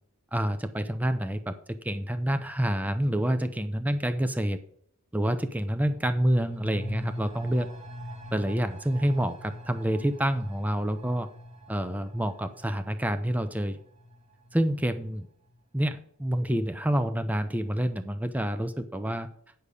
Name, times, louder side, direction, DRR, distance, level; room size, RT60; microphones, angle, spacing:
voice 1, 0.3-4.6 5.1-7.7 8.3-11.3 11.7-13.8 14.5-15.3 15.7-19.3, right 1 dB, 5° right, 10 dB, 0.5 m, -28 dB
sound 1, 5.8-15.1 15.5-15.6, equal, 30° right, 1.6 m, -43 dB
9.8 x 6.6 x 5.3 m, 0.64 s
head